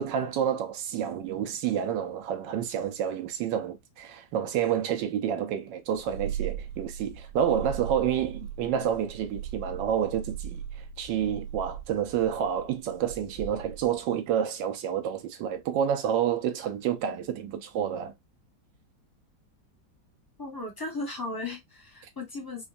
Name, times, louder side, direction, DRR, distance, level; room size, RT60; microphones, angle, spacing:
voice 1, 0.0-10.6 11.0-18.1, right 9 dB, 80° right, 1.4 m, -29 dB
Purr, 6.0-14.0, right 8 dB, 60° right, 1.5 m, -39 dB
voice 2, 20.4-22.6, left 2 dB, 20° left, 0.7 m, -36 dB
4.5 x 2.4 x 2.5 m
omnidirectional pair, 1.9 m